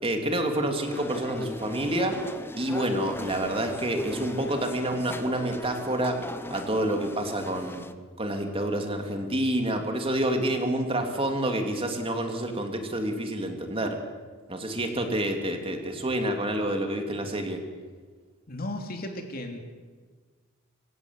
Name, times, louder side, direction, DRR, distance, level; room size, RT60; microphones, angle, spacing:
voice 1, 0.0-2.2 2.6-6.2 6.5-7.9 8.2-14.0 14.5-17.6, right 1 dB, 25° right, 4 dB, 2.9 m, -28 dB
sound 1, 0.9-7.9, left 1 dB, 10° left, 0.9 m, -38 dB
voice 2, 18.5-19.6, left 1 dB, 45° left, 4 dB, 3.0 m, -35 dB
26.0 x 15.5 x 8.3 m, 1.5 s
head